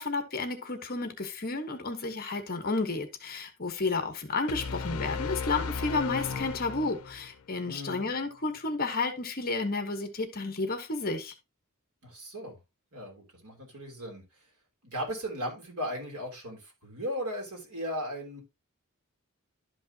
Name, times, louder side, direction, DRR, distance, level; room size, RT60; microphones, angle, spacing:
voice 1, 0.0-11.3, left 3 dB, 40° left, 1.2 m, -32 dB
sound 1, 4.5-7.4, left 5 dB, 85° left, 0.6 m, -35 dB
voice 2, 7.6-8.1 12.0-12.6 12.9-14.2 14.8-18.4, equal, 80° right, 3.4 m, -37 dB
11.5 x 5.3 x 2.8 m
head